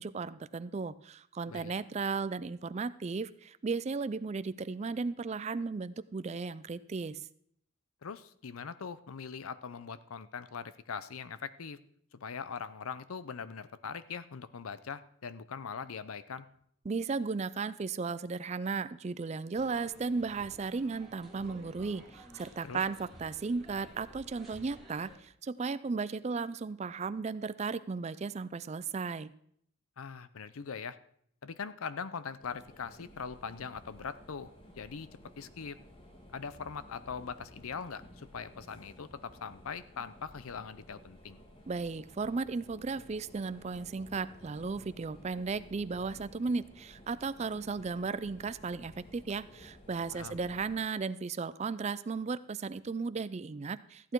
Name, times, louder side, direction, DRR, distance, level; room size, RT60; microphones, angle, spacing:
voice 1, 0.0-7.3 16.9-29.3 41.7-54.1, right 4 dB, 30° right, 15 dB, 0.3 m, -35 dB
voice 2, 8.0-11.8 12.1-16.5 22.6-22.8 30.0-31.0 31.4-34.5 34.8-35.1 35.4-35.8 36.3-41.4 50.1-50.4, left 6 dB, 80° left, 15 dB, 0.6 m, -41 dB
sound 1, 19.5-25.2, right 1 dB, ahead, 2.2 m, -53 dB
sound 2, 32.4-50.8, equal, 25° left, 1.5 m, -55 dB
14.0 x 8.8 x 4.6 m, 0.67 s
head